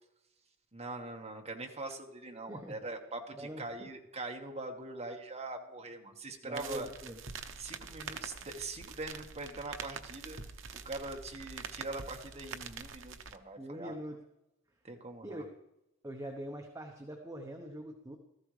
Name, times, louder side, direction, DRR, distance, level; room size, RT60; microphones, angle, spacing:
voice 1, 0.7-6.9 7.6-10.4 10.7-13.9 14.8-15.4, right 2 dB, 30° right, 2 dB, 1.4 m, -42 dB
voice 2, 3.3-3.9 6.4-7.2 13.6-14.2 15.2-15.5 16.0-18.2, equal, 15° right, 2 dB, 0.9 m, -43 dB
sound 1, 6.5-13.4, right 6 dB, 65° right, 0.8 m, -45 dB
15.5 x 14.0 x 3.3 m, 0.90 s
head